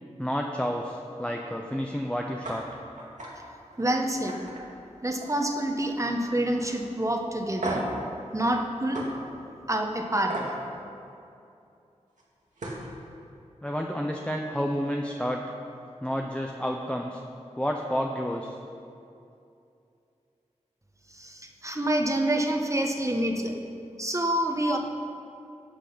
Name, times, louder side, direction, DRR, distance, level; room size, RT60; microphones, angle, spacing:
voice 1, 0.2-2.6 13.6-15.4 16.0-17.2 17.6-18.6, equal, 10° left, 1 dB, 0.8 m, -30 dB
sound 1, 2.4-2.6 3.0-3.3 3.7-3.9 4.3-5.5 5.7-6.2 6.6-6.7 7.6-8.0 8.9-9.1 10.3-10.5 12.2-12.3 12.6-12.9, right 2 dB, 90° right, 2.0 m, -35 dB
voice 2, 3.8-4.4 5.0-7.8 8.3-9.0 9.7-10.4 21.1-23.5 24.0-24.8, right 1 dB, 25° right, 2 dB, 1.4 m, -27 dB
18.0 x 6.0 x 5.7 m, 2.6 s
wide cardioid pair, 55°, 13 cm